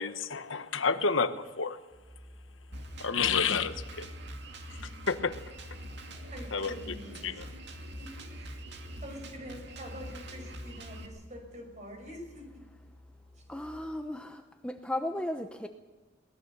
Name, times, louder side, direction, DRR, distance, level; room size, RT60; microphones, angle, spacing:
voice 1, 0.0-1.8 3.0-4.1 5.1-5.3 6.5-6.7 7.2-7.4, left 5 dB, 85° left, 10 dB, 1.2 m, -29 dB
Musical instrument, 1.9-13.9, right 1 dB, 15° right, 3.6 m, -55 dB
Drum kit, 2.7-11.1, equal, 60° right, 2.3 m, -44 dB
voice 2, 6.3-7.6 8.0-8.6 9.0-12.6, equal, 40° right, 4 dB, 5.8 m, -46 dB
voice 3, 13.5-15.7, left 1 dB, 5° left, 5 dB, 0.8 m, -35 dB
22.0 x 19.5 x 6.7 m, 1.3 s
head